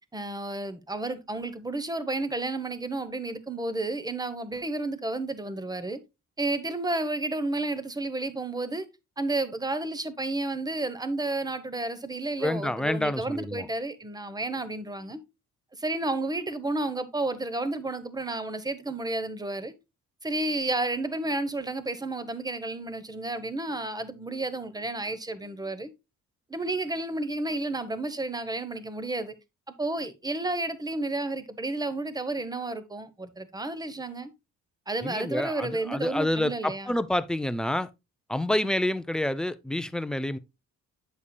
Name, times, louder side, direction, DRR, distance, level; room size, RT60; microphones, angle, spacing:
voice 1, 0.1-6.0 6.4-8.9 9.2-15.2 15.8-19.7 20.2-25.9 26.5-29.3 29.8-34.3 34.9-36.9, right 2 dB, 15° right, 1.0 m, -31 dB
voice 2, 12.4-13.7 35.0-37.9 38.3-40.4, left 1 dB, ahead, 0.5 m, -28 dB
8.2 x 6.8 x 2.3 m
cardioid pair, 90°, 30 cm